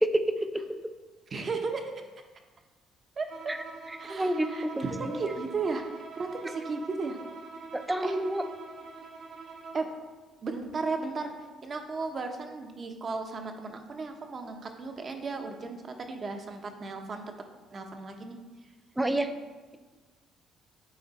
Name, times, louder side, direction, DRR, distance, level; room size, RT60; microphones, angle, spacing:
voice 1, 1.3-1.9 3.2-3.3 4.0-5.8 6.1-7.2 8.0-8.2 9.7-9.9 10.4-11.3 11.6-17.3 17.7-18.4, right 4 dB, 40° right, 5 dB, 0.9 m, -35 dB
Bowed string instrument, 3.3-9.9, right 4 dB, 70° right, 1.4 m, -44 dB
voice 2, 4.1-4.8 7.7-8.4 19.0-19.3, right 1 dB, 10° right, 8 dB, 0.6 m, -27 dB
9.0 x 3.9 x 4.1 m, 1.3 s
cardioid pair, 90°, 0 cm